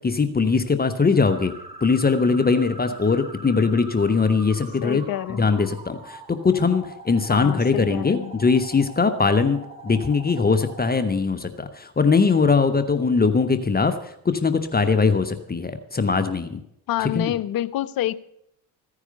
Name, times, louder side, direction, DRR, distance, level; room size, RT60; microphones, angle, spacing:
voice 1, 0.0-1.5 1.8-5.0 5.4-16.6 17.1-17.3, left 4 dB, 20° left, 9 dB, 1.2 m, -21 dB
sound 1, 1.2-10.9, right 1 dB, 10° right, 6.0 m, -43 dB
voice 2, 4.8-5.5 7.3-8.3 16.9-18.1, left 13 dB, 45° left, 16 dB, 0.8 m, -27 dB
15.0 x 9.8 x 6.7 m, 0.75 s
figure-of-eight pair, 55°, 48 cm